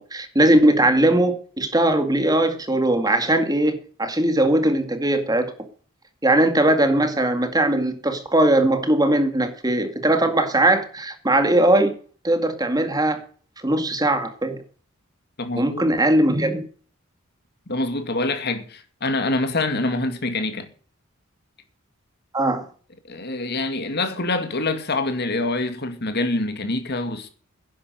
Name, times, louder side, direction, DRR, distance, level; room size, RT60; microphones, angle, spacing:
voice 1, 0.0-5.5 6.2-11.9 12.2-13.2 13.6-14.6 15.6-16.6 22.3-22.7, right 1 dB, 20° right, 2.0 m, -20 dB
voice 2, 15.4-15.9 17.7-20.7 23.1-27.3, left 2 dB, 50° left, 2.3 m, -25 dB
11.0 x 11.0 x 7.7 m
head